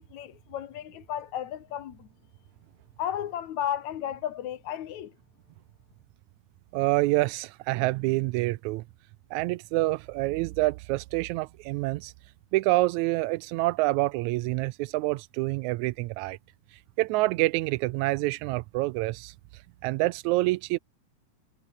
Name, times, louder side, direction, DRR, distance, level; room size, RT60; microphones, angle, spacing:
voice 1, 0.0-2.1 3.0-5.1, left 10 dB, 70° left, 2.5 m, -34 dB
voice 2, 6.7-8.8 9.3-12.1 12.5-16.4 17.0-19.3 19.8-20.8, right 20 dB, 80° right, 1.8 m, -27 dB
omnidirectional pair, 3.6 m